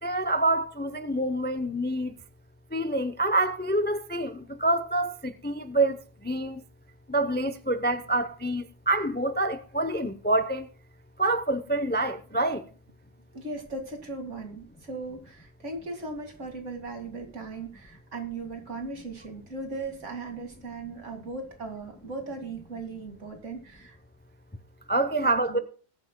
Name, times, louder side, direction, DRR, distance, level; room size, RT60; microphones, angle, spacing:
voice 1, 0.0-2.1 2.7-6.6 7.1-10.7 11.2-12.6 24.9-25.6, right 2 dB, 15° left, 0.4 m, -27 dB
voice 2, 13.3-24.0 25.2-25.6, right 3 dB, 70° right, 2.5 m, -38 dB
21.0 x 9.6 x 2.2 m
omnidirectional pair, 1.3 m